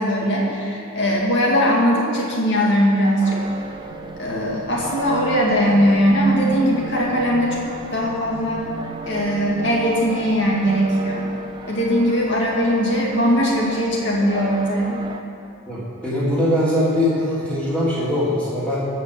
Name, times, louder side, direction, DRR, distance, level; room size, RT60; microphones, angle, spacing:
voice 1, 0.0-3.4 4.2-8.7 9.1-11.3 11.7-15.0, equal, 55° left, -3 dB, 2.4 m, -20 dB
sound 1, 3.2-15.2, right 3 dB, 20° right, 0.6 m, -35 dB
sound 2, 3.6-11.2, right 2 dB, 60° right, 1.0 m, -39 dB
voice 2, 15.7-18.8, left 1 dB, 5° left, -10 dB, 3.5 m, -21 dB
16.0 x 5.7 x 7.8 m, 2.6 s
head